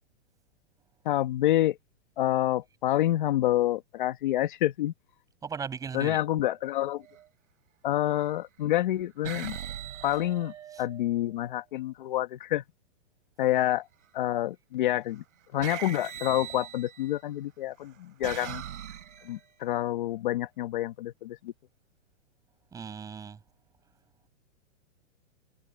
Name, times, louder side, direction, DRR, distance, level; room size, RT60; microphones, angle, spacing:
voice 1, 1.0-1.8 2.2-4.9 5.9-7.0 7.8-9.6 10.0-12.6 13.4-13.9 14.1-15.2 15.5-18.6 19.2-21.5, left 14 dB, 40° left, 1.4 m, -28 dB
voice 2, 5.4-6.2 10.7-10.8 22.7-23.4, right 6 dB, 10° right, 5.4 m, -37 dB
sound 1, 7.0-7.3 8.1-8.6 9.2-11.3 13.5-14.1 15.1-15.2 15.6-17.2 17.8-19.5, right 10 dB, 75° right, 3.5 m, -41 dB
hypercardioid pair, 170°, 37 cm